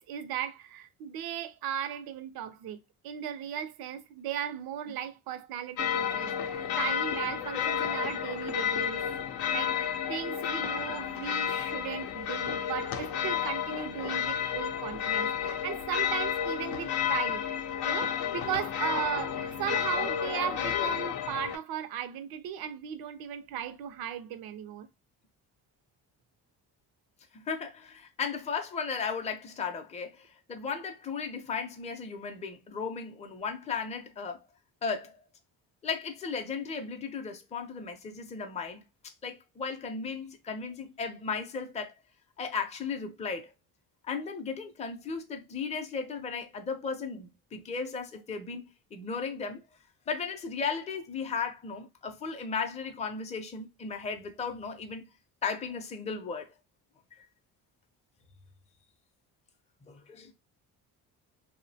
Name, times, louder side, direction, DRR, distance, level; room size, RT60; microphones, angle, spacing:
voice 1, 0.0-2.8 3.0-9.0 9.5-17.4 17.8-24.9, right 9 dB, 70° right, 0.5 m, -37 dB
sound 1, 5.8-21.6, left 8 dB, 85° left, 0.5 m, -31 dB
voice 2, 27.3-34.4 34.8-35.2 35.8-38.8 39.2-41.9 42.4-43.5 44.0-48.6 48.9-49.6 50.1-55.1 55.4-56.5 59.9-60.3, left 5 dB, 20° left, 0.5 m, -35 dB
2.6 x 2.1 x 2.6 m
cardioid pair, 90°, 38 cm